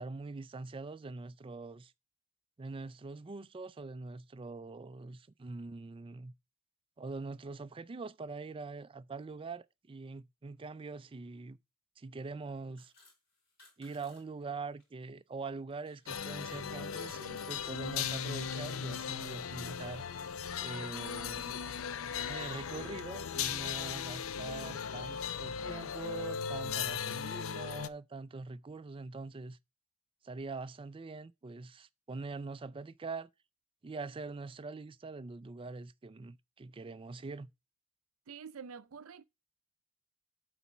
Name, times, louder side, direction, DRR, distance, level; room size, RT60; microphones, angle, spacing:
voice 1, 0.0-1.9 2.6-6.3 7.0-11.6 12.0-12.9 13.8-21.6 22.3-29.6 30.2-33.3 33.8-37.5, right 3 dB, 25° right, 0.4 m, -43 dB
sound 1, 12.5-14.9 15.3-16.2, left 3 dB, 50° left, 4.3 m, -63 dB
sound 2, 16.1-27.9, left 7 dB, 70° left, 0.5 m, -38 dB
voice 2, 38.3-39.2, right 6 dB, 80° right, 0.5 m, -47 dB
8.4 x 4.1 x 5.9 m
head